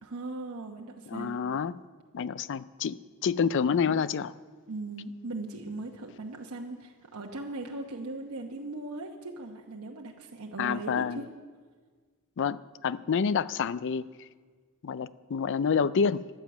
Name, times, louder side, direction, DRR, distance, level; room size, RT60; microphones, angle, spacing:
voice 1, 0.0-1.4 4.7-11.2, right 2 dB, 75° right, 0 dB, 1.0 m, -39 dB
voice 2, 1.1-1.8 2.1-4.3 10.6-11.2 12.4-14.1 14.8-16.2, left 6 dB, 55° left, 17 dB, 0.4 m, -28 dB
14.0 x 10.0 x 7.1 m, 1.5 s
head